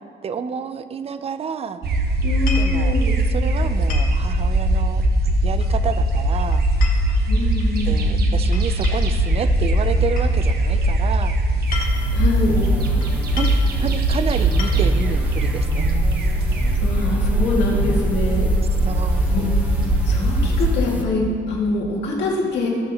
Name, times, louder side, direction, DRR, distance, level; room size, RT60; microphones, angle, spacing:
voice 1, 0.2-1.8 2.6-3.0 3.2-5.0 5.4-6.6 7.8-11.3 12.5-13.5 13.8-16.0 18.8-19.5, right 6 dB, 35° right, 11 dB, 0.5 m, -29 dB
sound 1, 1.8-20.7, right 1 dB, 60° right, 1.1 m, -20 dB
voice 2, 2.2-3.1 7.3-8.0 12.1-12.7 16.8-18.5 19.3-19.5 20.0-22.7, left 2 dB, 70° left, -4 dB, 2.3 m, -24 dB
sound 2, 2.3-2.8 3.9-4.2 5.6-6.0 6.5-7.7 8.5-9.2 10.2-10.3 11.5-12.2 13.0-13.1 13.4-13.7 14.4-15.0, left 4 dB, 50° left, 1.6 m, -33 dB
sound 3, 11.7-21.0, equal, 10° right, 1.2 m, -34 dB
18.0 x 6.3 x 3.0 m, 2.4 s
cardioid pair, 125°, 19 cm